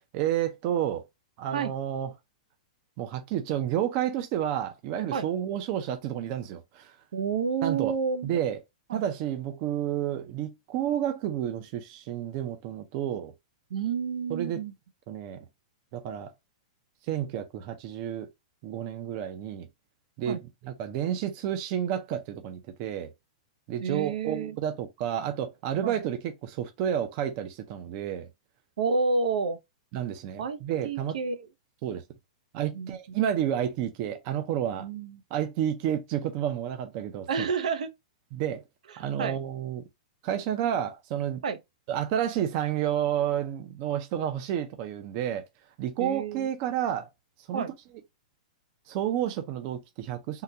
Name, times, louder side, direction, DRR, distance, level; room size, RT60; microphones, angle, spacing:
voice 1, 0.1-1.0 1.4-2.1 3.0-6.9 7.6-7.9 8.2-8.6 8.9-13.3 14.3-14.6 15.1-15.4 15.9-16.3 17.1-18.3 18.6-19.7 20.2-20.4 20.6-23.1 23.7-28.3 29.9-31.2 31.8-32.0 32.5-34.9 35.3-37.3 38.3-38.6 39.0-39.8 40.2-41.4 41.9-45.4 45.8-47.1 47.5-47.6 48.9-50.4, right 10 dB, 30° right, 0.5 m, -30 dB
voice 2, 7.1-8.3 8.9-9.0 13.7-14.7 20.3-20.4 23.8-24.6 25.8-26.0 28.8-29.6 30.4-31.5 32.7-33.0 34.8-35.2 37.3-37.9 38.9-39.4 41.4-41.6 46.0-46.5 47.5-47.7, right 5 dB, 80° right, 0.7 m, -30 dB
3.7 x 2.2 x 2.7 m
supercardioid pair, 175°, 4 cm